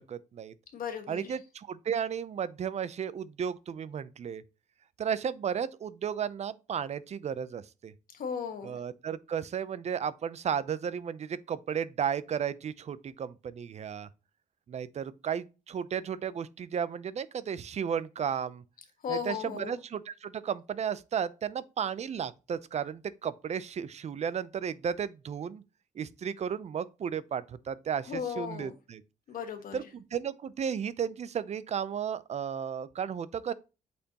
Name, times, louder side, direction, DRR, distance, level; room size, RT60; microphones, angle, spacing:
voice 1, 0.0-0.5 1.1-4.4 5.0-7.9 8.6-14.1 14.7-18.6 19.1-25.6 26.0-29.0 29.7-33.5, right 8 dB, 50° right, 0.5 m, -34 dB
voice 2, 0.7-1.3 8.1-8.8 19.0-19.8 28.1-28.7 29.3-29.8, left 7 dB, 80° left, 1.4 m, -36 dB
8.3 x 4.4 x 2.9 m
cardioid pair, 120°, 15 cm